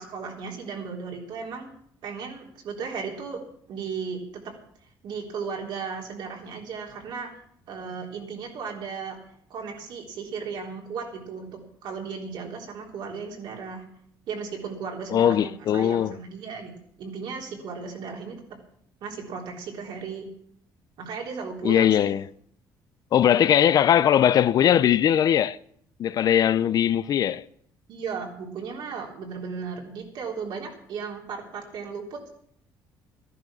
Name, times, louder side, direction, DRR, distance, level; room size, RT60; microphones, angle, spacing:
voice 1, 0.0-1.7 2.0-3.4 3.7-4.5 5.0-7.3 7.7-9.2 9.5-13.8 14.3-16.7 17.0-18.4 19.0-20.3 21.0-22.1 27.9-32.3, right 5 dB, 65° right, 3.6 m, -35 dB
voice 2, 15.1-16.2 21.6-22.3 23.1-25.6 26.0-27.4, left 10 dB, 50° left, 0.5 m, -20 dB
13.5 x 11.0 x 6.2 m
cardioid pair, 125°, 8 cm